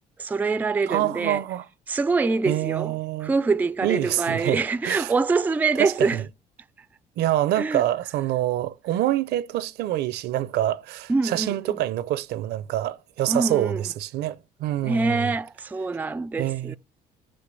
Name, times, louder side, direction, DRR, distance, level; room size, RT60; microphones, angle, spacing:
voice 1, 0.2-1.4 1.9-3.0 3.2-6.2 7.6-7.8 11.1-11.8 13.3-13.8 14.8-16.8, right 4 dB, 10° right, 0.3 m, -25 dB
voice 2, 0.9-1.7 2.4-3.3 3.8-5.1 5.8-6.3 7.2-15.4 16.4-16.8, right 13 dB, 75° right, 0.5 m, -26 dB
5.8 x 5.2 x 6.8 m
cardioid pair, 110°, 17 cm